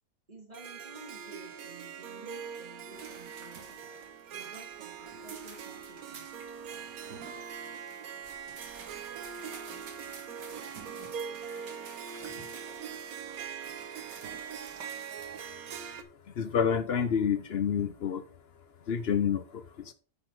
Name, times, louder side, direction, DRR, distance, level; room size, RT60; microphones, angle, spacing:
voice 1, 0.3-3.8 4.3-6.3 8.5-8.6 10.3-12.5, right 1 dB, 25° right, -1 dB, 3.2 m, -53 dB
Harp, 0.5-16.0, right 7 dB, 60° right, 1.3 m, -42 dB
sound 1, 2.9-15.4, right 6 dB, 80° right, 2.1 m, -50 dB
voice 2, 16.4-18.2 18.9-19.9, left 7 dB, 55° left, 12 dB, 0.7 m, -28 dB
9.7 x 6.7 x 3.5 m, 0.37 s
omnidirectional pair, 1.8 m